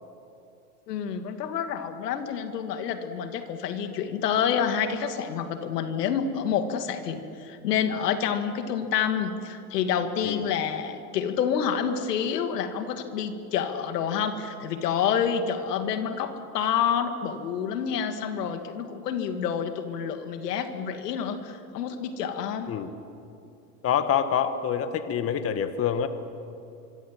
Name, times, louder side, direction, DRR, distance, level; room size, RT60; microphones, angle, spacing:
voice 1, 0.9-22.7, left 7 dB, 90° left, 7 dB, 2.4 m, -28 dB
voice 2, 23.8-26.1, left 8 dB, 30° left, 9 dB, 1.5 m, -26 dB
25.0 x 24.5 x 7.7 m, 2.6 s
supercardioid pair, 130°, 46 cm